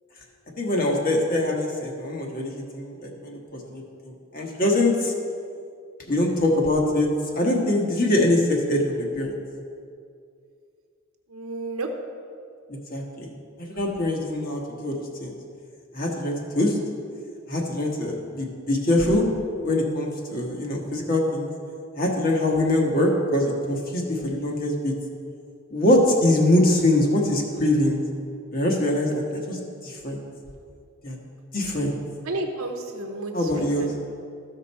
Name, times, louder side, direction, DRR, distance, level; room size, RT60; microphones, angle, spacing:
voice 1, 0.6-5.1 6.1-7.1 7.3-9.3 12.7-13.3 13.6-15.3 15.9-16.7 17.5-19.2 19.6-21.5 21.9-24.9 25.7-28.0 28.5-29.6 29.8-30.2 31.0-31.2 31.5-32.0 33.3-33.9, left 1 dB, 40° left, 0 dB, 1.3 m, -23 dB
voice 2, 11.3-11.9 29.3-29.5 32.2-34.0, right 2 dB, 75° right, 3 dB, 0.8 m, -32 dB
14.5 x 5.2 x 4.2 m, 2.3 s
head